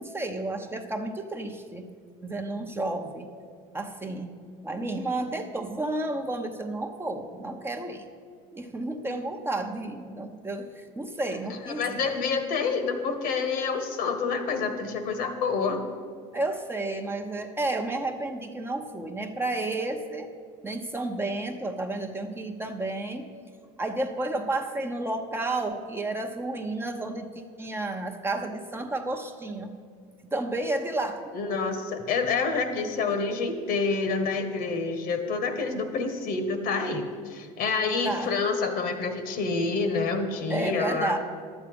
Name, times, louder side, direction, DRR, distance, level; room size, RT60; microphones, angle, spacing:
voice 1, 0.0-1.9 2.2-3.3 3.7-4.3 4.6-8.1 8.5-12.1 16.3-20.3 20.6-23.3 23.8-27.3 27.6-29.7 30.3-31.2 38.0-38.3 40.5-41.2, right 2 dB, 15° right, 4 dB, 0.9 m, -31 dB
voice 2, 11.8-15.8 31.3-41.2, left 4 dB, 55° left, 8 dB, 1.3 m, -28 dB
11.0 x 8.2 x 5.3 m, 2.1 s
supercardioid pair, 90°, 18 cm